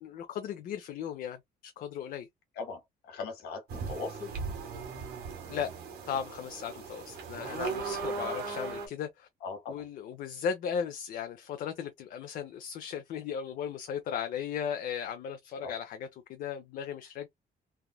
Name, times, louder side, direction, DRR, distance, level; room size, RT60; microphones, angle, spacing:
voice 1, 0.0-2.3 5.5-5.7 6.1-9.3 9.7-17.3, left 8 dB, 65° left, 0.5 m, -36 dB
voice 2, 2.6-4.3 8.2-8.4 9.4-9.8 15.6-15.7, left 4 dB, 85° left, 1.3 m, -40 dB
sound 1, 3.7-8.9, right 5 dB, 80° right, 1.4 m, -38 dB
3.4 x 2.3 x 2.3 m
cardioid pair, 175°, 16 cm